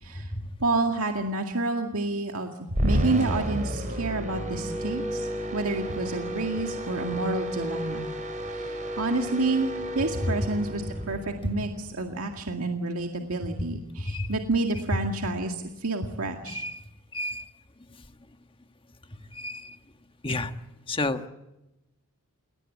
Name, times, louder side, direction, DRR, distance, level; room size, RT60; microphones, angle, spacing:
voice 1, 0.0-0.3 0.6-2.5 2.8-8.1 8.4-16.6, right 2 dB, 75° right, 3 dB, 2.1 m, -29 dB
sound 1, 2.7-12.1, equal, 35° right, 5.5 m, -31 dB
voice 2, 16.5-16.8 17.1-17.4 19.3-19.8 20.2-20.5 20.9-21.3, left 2 dB, 25° left, 8 dB, 1.4 m, -30 dB
29.0 x 18.5 x 8.4 m, 0.95 s
head